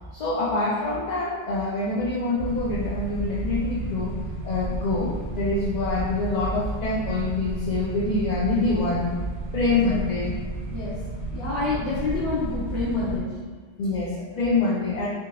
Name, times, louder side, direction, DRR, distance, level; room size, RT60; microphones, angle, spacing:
voice 1, 0.1-4.2 4.4-9.2 9.5-10.4 13.8-15.1, left 3 dB, 55° left, -6 dB, 0.5 m, -25 dB
sound 1, 2.4-13.2, right 2 dB, 60° right, 0.7 m, -32 dB
voice 2, 11.3-13.4, left 3 dB, 75° left, -11 dB, 1.1 m, -28 dB
3.6 x 2.7 x 2.7 m, 1.5 s
omnidirectional pair, 1.2 m